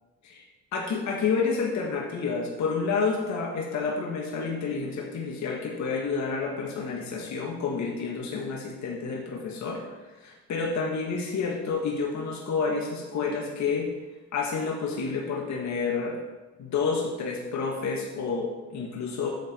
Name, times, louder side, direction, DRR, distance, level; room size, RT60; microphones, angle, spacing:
voice 1, 0.7-9.8 10.2-13.9 14.3-16.2 16.6-19.3, left 5 dB, 65° left, -1 dB, 1.9 m, -29 dB
10.0 x 7.4 x 4.6 m, 1.2 s
cardioid pair, 90°, 30 cm